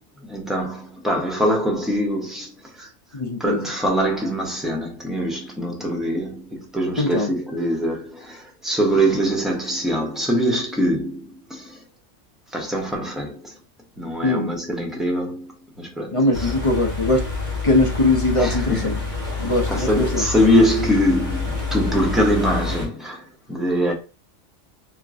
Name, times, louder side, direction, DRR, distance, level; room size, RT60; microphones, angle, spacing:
voice 1, 0.2-2.9 3.4-11.8 12.5-13.6 14.0-15.5 15.8-16.5 18.4-23.9, equal, ahead, 0.7 m, -23 dB
voice 2, 3.1-3.6 7.0-7.3 14.2-14.5 16.1-17.3 17.6-19.0 19.4-20.2, left 2 dB, 30° left, 0.7 m, -21 dB
sound 1, 16.3-22.9, left 3 dB, 80° right, 2.1 m, -27 dB
4.4 x 2.2 x 2.4 m
omnidirectional pair, 1.3 m